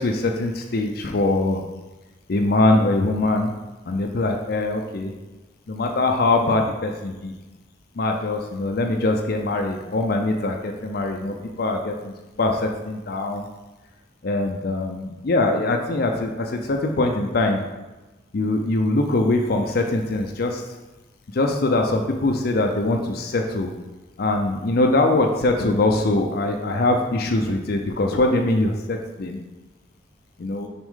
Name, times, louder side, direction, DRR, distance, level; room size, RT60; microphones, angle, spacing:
voice 1, 0.0-1.6 2.3-3.5 3.9-5.1 5.7-7.3 8.0-13.5 14.2-17.6 18.3-20.6 21.3-23.7 24.2-29.4 30.4-30.7, left 2 dB, 55° left, 3 dB, 0.5 m, -22 dB
6.1 x 4.4 x 3.7 m, 1.1 s
head